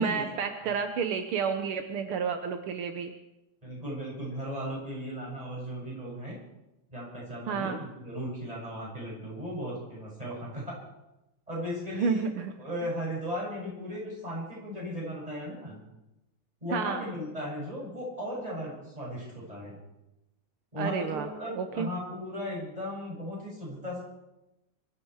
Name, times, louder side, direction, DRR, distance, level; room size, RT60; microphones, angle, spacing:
voice 1, 0.0-3.1 7.5-7.8 11.9-12.5 16.7-17.0 20.8-21.9, right 6 dB, 75° right, 7 dB, 1.9 m, -30 dB
voice 2, 3.6-6.4 6.9-10.8 11.5-15.8 16.6-19.8 20.7-24.0, equal, 15° right, -5 dB, 7.3 m, -36 dB
23.5 x 13.0 x 4.7 m, 0.96 s
omnidirectional pair, 2.4 m